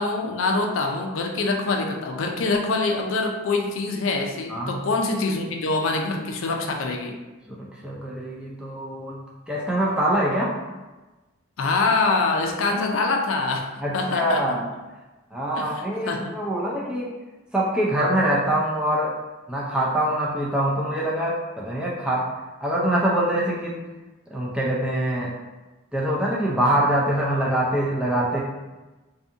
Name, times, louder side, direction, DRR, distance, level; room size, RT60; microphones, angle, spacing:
voice 1, 0.0-7.1 11.6-13.6 13.9-14.5 15.6-15.7 16.1-16.3, left 3 dB, 70° left, 2 dB, 0.4 m, -24 dB
voice 2, 7.5-9.2 9.5-10.5 12.7-12.8 13.8-14.7 15.3-17.1 17.5-19.1 19.5-22.2 22.6-23.7 24.3-25.3 25.9-28.4, right 1 dB, 5° right, -5 dB, 0.3 m, -24 dB
2.6 x 2.5 x 2.4 m, 1.2 s
head